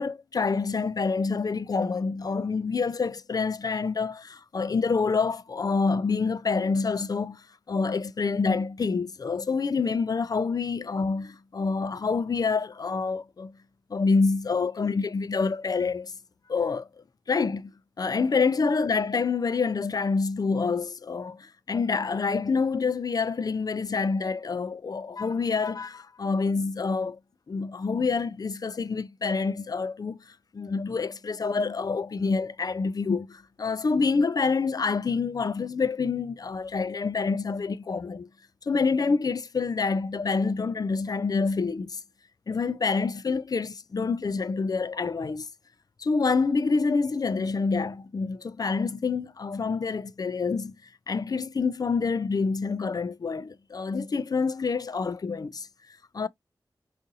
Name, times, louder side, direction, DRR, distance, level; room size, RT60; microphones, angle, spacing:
voice 1, 0.0-7.4 7.7-13.5 13.9-16.1 16.5-16.9 17.3-17.7 18.0-27.2 27.5-30.2 30.5-38.3 38.7-42.0 42.5-45.5 46.0-50.7 51.1-55.7 56.1-56.3, left 4 dB, 50° left, 0.3 m, -27 dB
3.9 x 2.5 x 2.6 m
wide cardioid pair, 60°, 8 cm